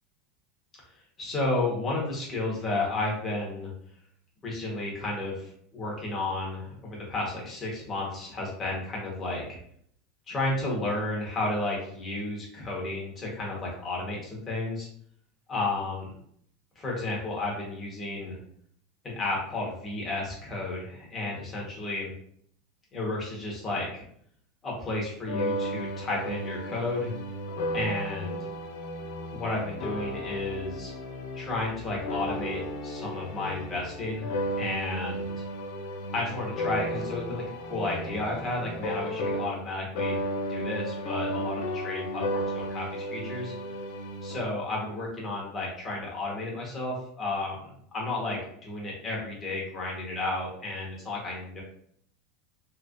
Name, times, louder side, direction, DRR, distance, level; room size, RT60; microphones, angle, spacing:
voice 1, 1.2-3.7 4.4-9.6 10.3-14.9 15.5-16.1 16.7-18.4 19.0-22.1 22.9-24.0 24.6-27.1 27.7-28.4 29.3-30.9 31.3-35.3 36.1-43.5 44.2-51.6, left 2 dB, 25° left, -3 dB, 1.3 m, -32 dB
sound 1, 25.3-39.7 40.0-44.4, equal, 80° left, 0.5 m, -34 dB
3.3 x 3.1 x 2.6 m, 0.65 s
supercardioid pair, 140°, 0 cm